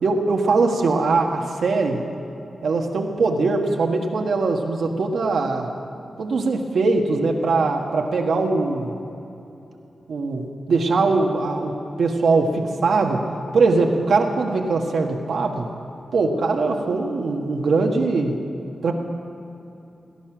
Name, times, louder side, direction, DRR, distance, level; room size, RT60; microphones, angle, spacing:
voice 1, 0.0-2.0 2.6-5.7 6.2-8.9 10.1-11.7 12.0-13.2 13.5-15.7 16.1-18.4 18.8-18.9, right 3 dB, 80° right, 2 dB, 1.4 m, -21 dB
18.0 x 11.0 x 6.1 m, 2.9 s
wide cardioid pair, 115°, 0 cm